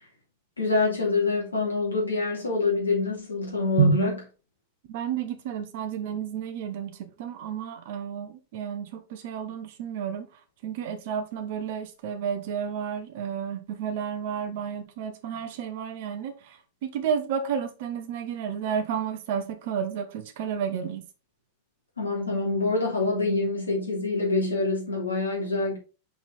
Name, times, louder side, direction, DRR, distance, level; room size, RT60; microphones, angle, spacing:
voice 1, 0.6-4.1 22.0-25.8, left 3 dB, 80° left, 3.0 m, -26 dB
voice 2, 4.9-10.3 10.6-21.0, right 7 dB, 50° right, 1.2 m, -31 dB
6.0 x 4.6 x 4.0 m
figure-of-eight pair, 90°, 0 cm